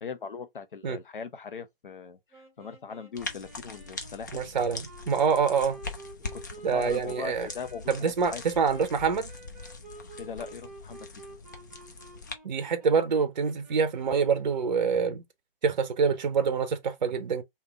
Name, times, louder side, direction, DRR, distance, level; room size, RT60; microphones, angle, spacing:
voice 1, 0.0-2.2 2.6-4.4 6.2-8.4 10.2-11.1, left 5 dB, 60° left, 0.8 m, -40 dB
sound 1, 2.3-14.9, right 3 dB, 5° right, 0.8 m, -50 dB
sound 2, 3.2-12.3, left 3 dB, 20° left, 0.4 m, -42 dB
voice 2, 4.3-5.8 6.6-7.5 7.9-9.3 12.4-15.2 15.6-17.4, right 6 dB, 50° right, 0.6 m, -26 dB
3.3 x 2.8 x 3.3 m
figure-of-eight pair, 135°, 29 cm